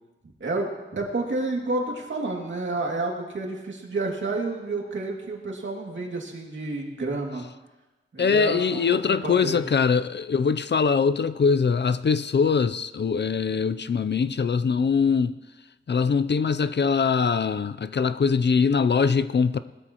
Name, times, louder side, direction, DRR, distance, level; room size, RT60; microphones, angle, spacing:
voice 1, 0.4-7.4 8.1-9.6, right 2 dB, 65° right, 2.4 m, -30 dB
voice 2, 8.2-15.4 15.9-19.6, left 5 dB, 55° left, 0.5 m, -22 dB
19.5 x 13.0 x 3.0 m
wide cardioid pair, 85°, 21 cm